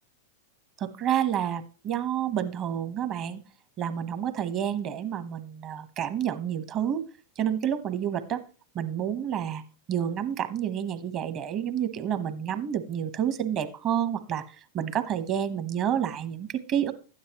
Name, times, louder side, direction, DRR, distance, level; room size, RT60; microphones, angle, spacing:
voice 1, 0.8-3.4 3.8-7.0 7.4-8.4 8.7-9.6 9.9-14.4 14.7-16.9, right 9 dB, 40° right, 11 dB, 1.0 m, -29 dB
12.5 x 9.5 x 2.9 m, 0.36 s
hypercardioid pair, 105°, 0 cm